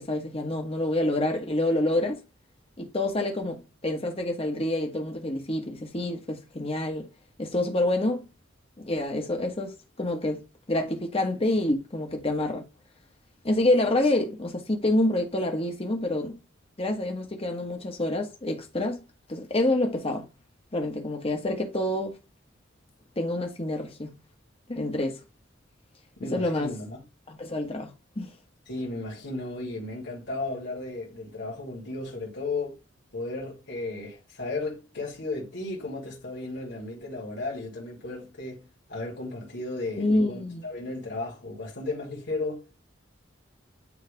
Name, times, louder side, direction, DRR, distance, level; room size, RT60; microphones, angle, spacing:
voice 1, 0.0-2.2 2.8-7.1 7.4-8.3 8.8-10.4 10.7-12.6 13.4-16.4 16.8-19.0 19.3-20.2 20.7-22.1 23.2-24.1 24.7-25.2 26.3-26.7 27.3-28.3 40.0-40.6, left 1 dB, 30° left, 1.3 m, -27 dB
voice 2, 26.2-27.0 28.7-32.8 33.1-42.7, left 2 dB, 60° left, 2.5 m, -34 dB
9.5 x 3.2 x 3.4 m
head